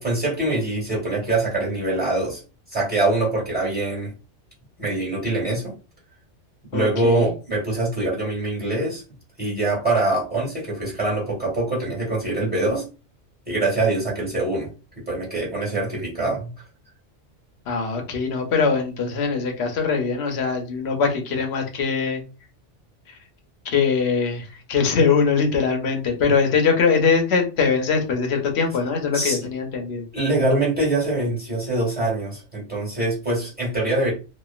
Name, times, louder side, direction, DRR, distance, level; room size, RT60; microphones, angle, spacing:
voice 1, 0.0-2.4 2.7-4.1 4.8-5.7 6.7-9.0 9.4-12.9 13.5-14.7 14.9-16.5 29.1-29.4 30.1-34.1, right 2 dB, 10° right, 1.6 m, -24 dB
voice 2, 6.7-7.3 17.7-22.2 23.6-30.1, left 5 dB, 65° left, 1.0 m, -22 dB
3.0 x 2.4 x 2.4 m
omnidirectional pair, 1.2 m